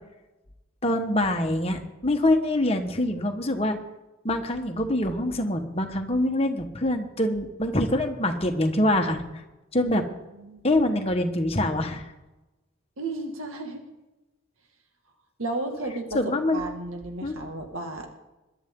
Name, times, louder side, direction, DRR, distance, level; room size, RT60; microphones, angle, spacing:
voice 1, 0.8-3.8 4.2-9.2 9.7-10.0 10.6-12.1 16.1-16.6 17.2-17.3, left 1 dB, 30° left, 4 dB, 1.3 m, -25 dB
voice 2, 10.4-10.7 13.0-13.8 15.4-18.1, right 2 dB, 80° right, 4 dB, 2.1 m, -33 dB
21.5 x 11.5 x 3.8 m, 1.0 s
head